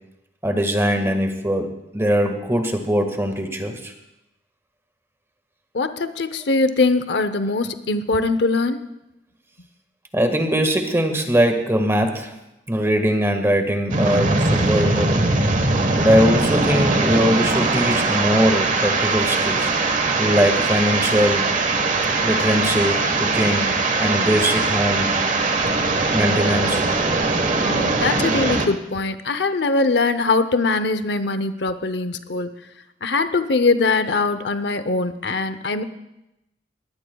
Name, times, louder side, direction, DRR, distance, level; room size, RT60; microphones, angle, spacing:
voice 1, 0.4-3.9 10.1-12.3 12.7-15.3 16.0-21.5 22.2-23.7 24.0-25.1 26.1-26.8, equal, 15° right, 5 dB, 1.6 m, -21 dB
voice 2, 5.7-8.8 27.6-32.5 33.0-35.8, left 3 dB, 70° left, 11 dB, 0.8 m, -22 dB
sound 1, 13.9-28.7, right 3 dB, 45° right, 1.3 m, -21 dB
21.5 x 17.5 x 2.3 m, 0.90 s
head